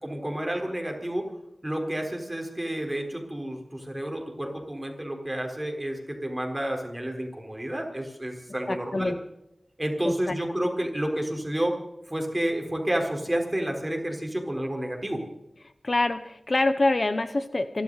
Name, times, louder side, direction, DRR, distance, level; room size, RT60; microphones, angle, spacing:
voice 1, 0.0-1.3 1.6-9.1 9.8-11.8 12.1-15.2, right 1 dB, 20° right, 2 dB, 4.1 m, -30 dB
voice 2, 8.7-9.2 10.0-10.3 15.8-17.8, left 2 dB, 50° left, 11 dB, 0.9 m, -26 dB
27.0 x 12.5 x 4.1 m, 0.86 s
wide cardioid pair, 80°, 0 cm